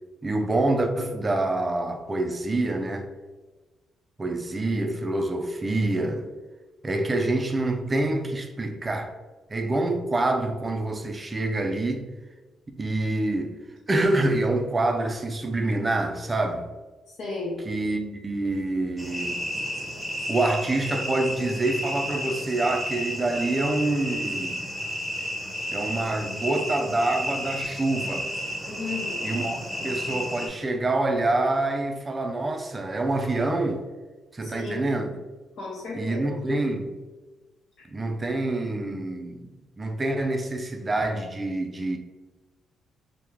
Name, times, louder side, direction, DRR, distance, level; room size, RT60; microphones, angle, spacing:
voice 1, 0.2-3.1 4.2-6.3 6.8-9.1 9.5-12.1 12.8-13.6 13.9-16.7 17.7-19.4 20.3-24.6 25.7-28.3 29.2-33.9 34.3-35.2 35.9-36.9 37.9-39.5 39.8-42.0, right 2 dB, 25° right, 0.4 m, -26 dB
voice 2, 17.1-17.6 28.7-29.3 34.4-34.9 35.6-36.3 37.8-37.9, left 3 dB, 70° left, 0.8 m, -34 dB
sound 1, 19.0-30.5, equal, 5° right, 0.7 m, -32 dB
3.4 x 2.0 x 2.9 m
cardioid pair, 90°, 0 cm